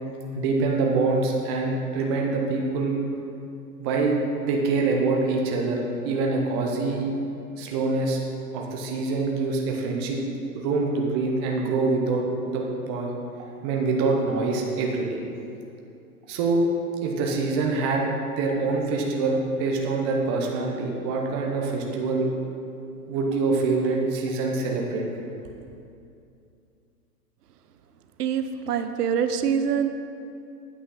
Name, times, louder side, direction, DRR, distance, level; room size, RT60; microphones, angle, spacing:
voice 1, 0.4-3.0 3.8-4.2 4.4-7.1 7.6-8.2 8.5-10.2 10.5-13.1 13.6-15.2 16.3-16.6 17.0-18.1 18.4-22.3 23.1-25.0, right 3 dB, 20° right, 0 dB, 0.5 m, -25 dB
voice 2, 28.2-29.9, right 7 dB, 80° right, 9 dB, 0.7 m, -25 dB
8.5 x 5.5 x 5.6 m, 2.6 s
hypercardioid pair, 150°, 46 cm